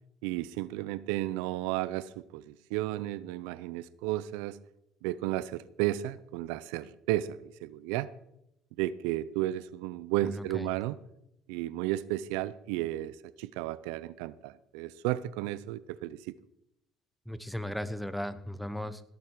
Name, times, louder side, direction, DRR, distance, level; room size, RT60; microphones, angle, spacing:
voice 1, 0.2-4.6 5.0-8.1 8.8-11.0 11.5-16.4, right 15 dB, 85° right, 0.5 m, -33 dB
voice 2, 10.2-10.7 17.3-19.0, equal, ahead, 1.0 m, -36 dB
17.5 x 8.3 x 4.7 m
supercardioid pair, 80°, 0 cm